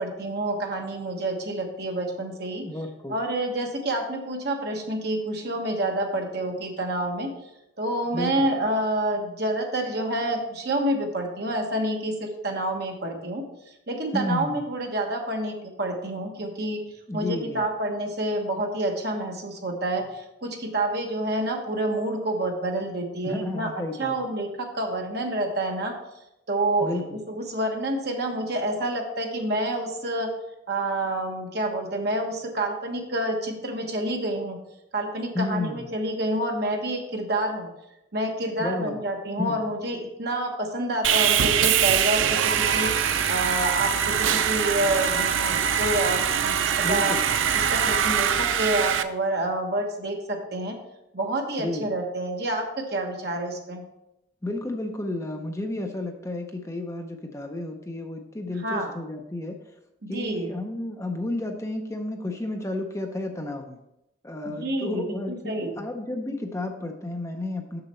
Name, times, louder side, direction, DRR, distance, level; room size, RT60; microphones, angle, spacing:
voice 1, 0.0-2.7 3.1-7.3 7.8-16.8 17.1-23.7 24.0-25.9 26.5-30.3 30.7-34.6 34.9-37.7 38.1-42.9 43.3-47.2 47.5-50.8 51.1-53.8 58.6-58.9 60.0-60.5 64.5-65.8, right 1 dB, 55° right, 2 dB, 1.2 m, -28 dB
voice 2, 2.6-3.2 8.1-8.5 14.1-14.6 17.1-17.6 23.2-24.2 26.8-27.0 35.3-35.9 38.6-39.0 39.4-39.6 46.8-47.2 51.6-51.9 54.4-59.8 60.1-63.8 64.2-67.8, left 2 dB, 15° left, 4 dB, 0.6 m, -32 dB
Sawing, 41.0-49.0, right 8 dB, 85° right, 0.5 m, -23 dB
6.8 x 6.5 x 4.3 m, 0.87 s
head